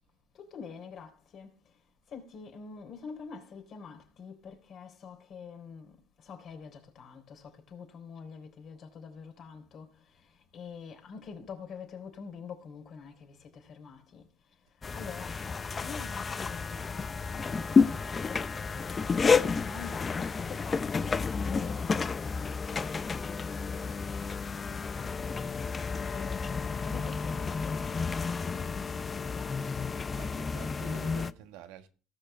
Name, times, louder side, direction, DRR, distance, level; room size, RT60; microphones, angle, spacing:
voice 1, 0.3-1.5 2.1-14.3 14.9-18.5 19.1-22.2 22.7-25.3 25.7-29.9, left 6 dB, 50° left, 3.6 m, -46 dB
sound 1, 14.8-31.3, left 5 dB, 30° left, 0.6 m, -31 dB
voice 2, 30.1-31.9, right 9 dB, 85° right, 1.4 m, -47 dB
18.0 x 6.8 x 3.3 m
supercardioid pair, 95°, 0 cm